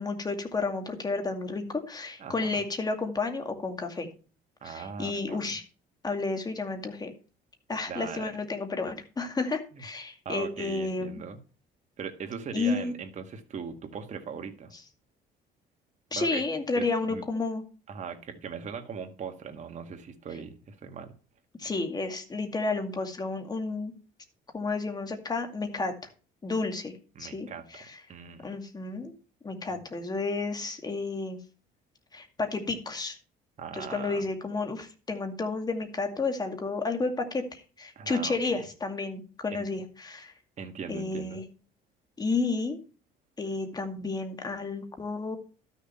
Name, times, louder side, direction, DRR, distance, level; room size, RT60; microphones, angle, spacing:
voice 1, 0.0-4.1 4.6-5.6 6.0-7.1 7.7-11.2 12.5-12.9 16.1-17.6 21.6-23.9 24.5-25.9 26.4-28.0 28.4-29.1 29.4-31.4 32.1-33.2 33.7-40.3 40.9-41.4 42.2-42.8 43.4-45.4, left 3 dB, 25° left, 2.2 m, -31 dB
voice 2, 2.2-2.6 4.6-5.4 7.9-8.4 9.7-9.8 10.3-11.4 12.0-14.7 16.1-16.4 16.8-17.2 17.9-21.1 27.2-27.6 28.1-28.5 33.6-34.2 38.0-38.7 39.5-39.7 40.6-41.4, right 6 dB, 45° right, 1.9 m, -39 dB
12.5 x 6.6 x 4.3 m
cardioid pair, 110°, 17 cm